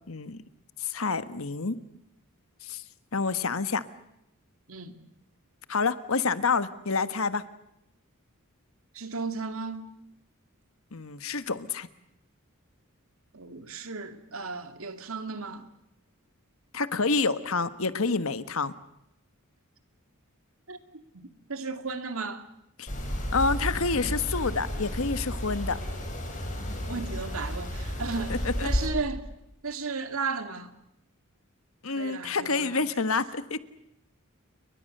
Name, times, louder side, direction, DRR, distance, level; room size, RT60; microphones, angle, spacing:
voice 1, 0.1-0.4 0.8-1.8 2.6-2.8 3.1-3.8 5.7-7.4 10.9-11.9 16.7-18.7 22.8-22.9 23.3-25.8 28.3-28.7 31.8-33.6, left 4 dB, 70° left, 1.4 m, -28 dB
voice 2, 8.9-9.9 13.3-15.7 20.7-20.8 21.1-22.5 26.8-29.2 29.6-30.7 31.9-32.8, right 4 dB, 70° right, 2.4 m, -35 dB
sound 1, 22.9-28.9, equal, 35° left, 7.6 m, -32 dB
30.0 x 23.0 x 6.7 m
head